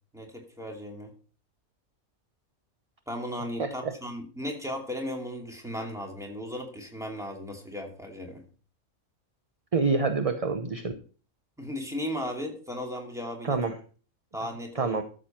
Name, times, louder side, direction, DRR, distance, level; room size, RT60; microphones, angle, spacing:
voice 1, 0.1-1.1 3.1-8.4 11.6-13.6 14.3-15.0, equal, ahead, 1 dB, 2.5 m, -36 dB
voice 2, 3.6-3.9 9.7-11.0 13.4-13.8 14.7-15.0, right 4 dB, 30° right, 7 dB, 0.8 m, -27 dB
13.0 x 7.6 x 4.4 m, 0.39 s
omnidirectional pair, 1.5 m